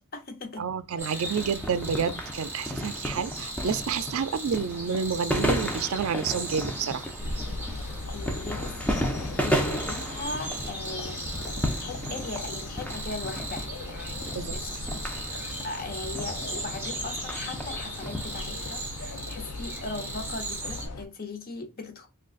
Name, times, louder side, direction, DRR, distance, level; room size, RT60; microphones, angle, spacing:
voice 1, 0.0-0.7 1.0-1.4 7.9-14.9 15.3-22.1, left 3 dB, 40° left, 0.7 m, -39 dB
voice 2, 0.6-7.1 14.3-14.6, right 6 dB, 65° right, 0.4 m, -29 dB
sound 1, 1.0-20.9, right 2 dB, 10° right, 1.0 m, -38 dB
sound 2, 1.2-18.7, equal, 5° left, 0.5 m, -34 dB
sound 3, 7.2-21.1, left 2 dB, 80° left, 0.5 m, -39 dB
3.7 x 2.3 x 2.4 m
head